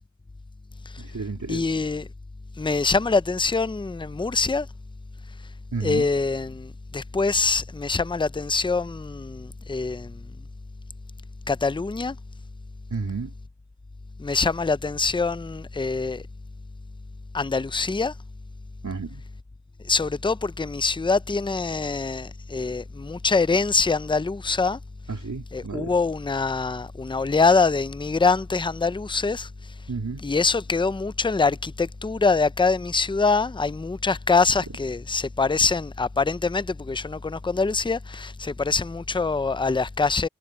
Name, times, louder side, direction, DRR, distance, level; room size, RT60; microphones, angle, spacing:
voice 1, 1.0-1.6 5.7-6.1 12.9-13.3 18.8-19.2 25.1-26.0 29.9-30.2, right 4 dB, 90° right, 3.3 m, -31 dB
voice 2, 1.5-2.1 2.6-4.7 5.8-10.2 11.5-12.2 14.2-16.2 17.3-18.1 19.8-24.8 25.5-29.5 30.2-40.3, left 4 dB, 15° left, 0.5 m, -24 dB
wide cardioid pair, 45°, 29 cm